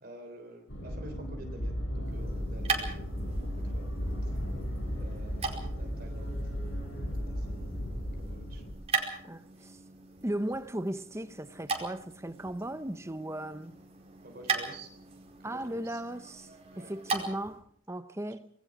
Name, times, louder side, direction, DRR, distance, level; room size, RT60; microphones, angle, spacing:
voice 1, 0.0-3.3 3.6-3.9 4.2-4.4 5.0-7.8 8.2-8.6 9.4-9.6 14.2-14.9 15.4-16.0 16.7-17.3, right 1 dB, 50° right, 3.6 m, -50 dB
sound 1, 0.7-8.7, equal, 85° left, 7.0 m, -35 dB
sound 2, 2.0-17.6, right 4 dB, 30° right, 4.8 m, -39 dB
voice 2, 9.2-9.8 10.2-13.7 15.4-18.5, right 1 dB, 15° right, 0.8 m, -37 dB
27.0 x 21.0 x 5.0 m
head